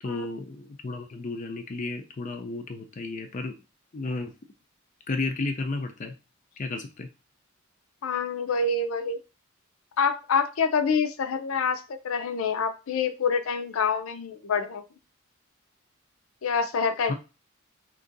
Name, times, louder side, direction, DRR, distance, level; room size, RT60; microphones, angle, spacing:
voice 1, 0.0-3.5 3.9-4.3 5.1-6.1 6.6-7.1 17.1-17.2, left 3 dB, 40° left, 5 dB, 0.4 m, -32 dB
voice 2, 8.0-9.2 10.0-14.8 16.4-17.1, left 5 dB, 90° left, 10 dB, 0.5 m, -26 dB
2.9 x 2.6 x 3.8 m, 0.30 s
head